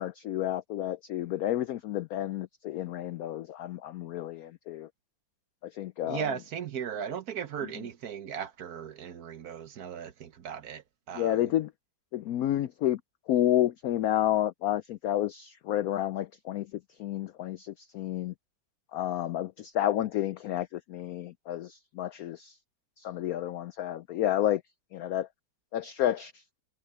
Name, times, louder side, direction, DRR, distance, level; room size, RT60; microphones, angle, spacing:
voice 1, 0.0-4.9 5.6-6.2 11.1-11.7 12.1-13.0 13.3-16.7 17.0-18.3 18.9-22.6 23.0-24.6 24.9-25.3 25.7-26.4, left 12 dB, 90° left, 0.7 m, -30 dB
voice 2, 6.1-11.5, right 7 dB, 60° right, 1.2 m, -37 dB
omnidirectional pair, 2.1 m